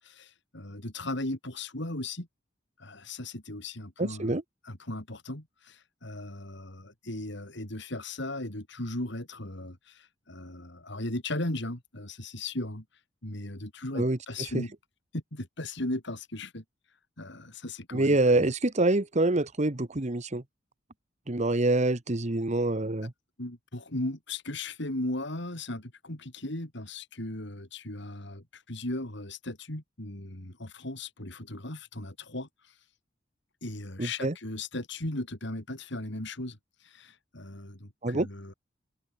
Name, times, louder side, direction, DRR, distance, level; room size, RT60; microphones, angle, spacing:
voice 1, 0.0-2.3 2.8-4.4 4.6-12.8 13.2-14.7 15.1-16.6 17.2-18.5 23.4-32.7 33.6-38.5, left 2 dB, 65° left, 4.1 m, -37 dB
voice 2, 4.0-4.4 13.9-14.2 14.5-14.6 17.9-20.4 21.3-23.1 34.0-34.3 38.0-38.3, right 2 dB, 35° right, 1.3 m, -26 dB
open air
head